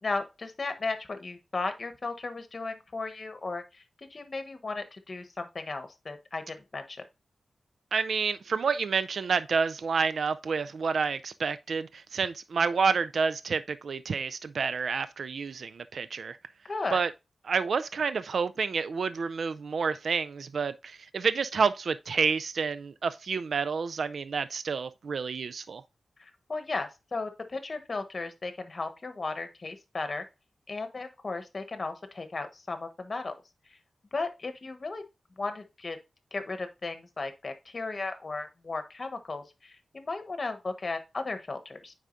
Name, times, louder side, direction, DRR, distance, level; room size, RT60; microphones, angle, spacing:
voice 1, 0.0-3.8 4.1-7.0 16.6-17.0 26.2-30.2 30.7-33.4 33.7-33.8 34.1-35.0 35.4-36.0 36.3-41.9, left 3 dB, 40° left, 1.2 m, -35 dB
voice 2, 7.9-16.4 16.9-17.1 17.5-25.8, right 5 dB, 65° right, 0.3 m, -29 dB
9.1 x 4.8 x 2.6 m
wide cardioid pair, 125°, 0 cm